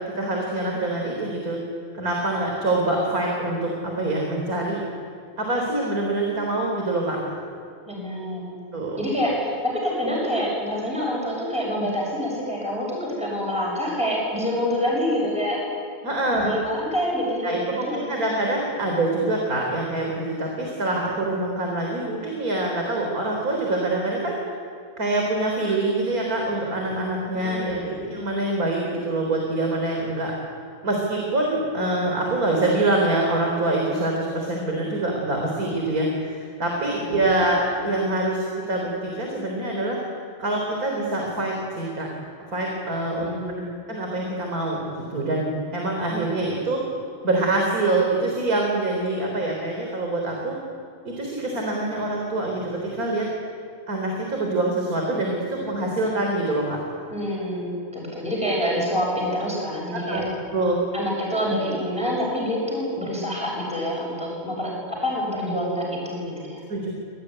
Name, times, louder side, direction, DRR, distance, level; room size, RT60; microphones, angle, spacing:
voice 1, 0.1-1.6 1.9-4.8 5.4-7.3 8.7-9.0 16.0-16.5 17.4-24.4 25.0-30.3 30.8-40.0 40.4-42.1 42.5-43.3 43.9-46.8 47.2-50.6 51.0-53.3 53.9-56.8 59.9-60.2 60.5-60.8 66.7-66.9, right 2 dB, 85° right, 0 dB, 4.4 m, -25 dB
voice 2, 7.9-8.6 9.0-15.6 16.3-18.2 27.3-27.9 36.9-37.3 43.2-43.6 57.1-60.2 60.9-66.6, equal, 5° right, -4 dB, 6.9 m, -27 dB
26.5 x 18.5 x 9.9 m, 2.5 s
omnidirectional pair, 1.5 m